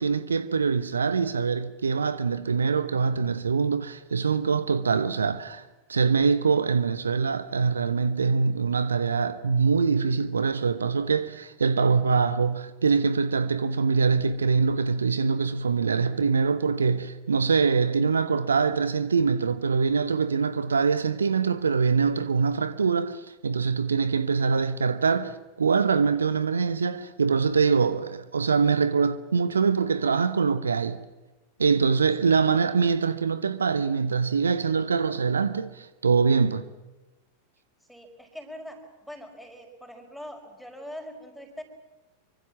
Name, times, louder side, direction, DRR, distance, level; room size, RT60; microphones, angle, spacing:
voice 1, 0.0-31.0 31.6-36.7, right 5 dB, 70° right, 0.9 m, -24 dB
voice 2, 32.2-32.6 37.9-41.6, equal, ahead, 5.3 m, -42 dB
25.0 x 24.5 x 7.4 m
figure-of-eight pair, 90°, 0 cm